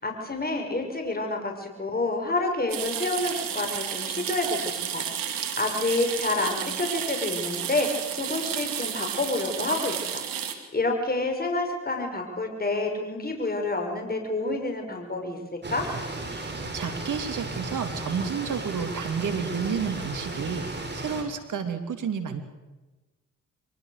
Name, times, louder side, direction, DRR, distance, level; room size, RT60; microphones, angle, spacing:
voice 1, 0.0-10.2 10.7-15.9, left 2 dB, 25° left, 3 dB, 6.3 m, -28 dB
sound 1, 2.7-10.5, right 9 dB, 80° right, 2.5 m, -32 dB
sound 2, 15.6-21.2, right 2 dB, 30° right, 6.1 m, -35 dB
voice 2, 16.4-22.4, right 6 dB, 65° right, 7 dB, 3.0 m, -31 dB
24.5 x 19.5 x 6.7 m, 1.1 s
supercardioid pair, 50°, 34 cm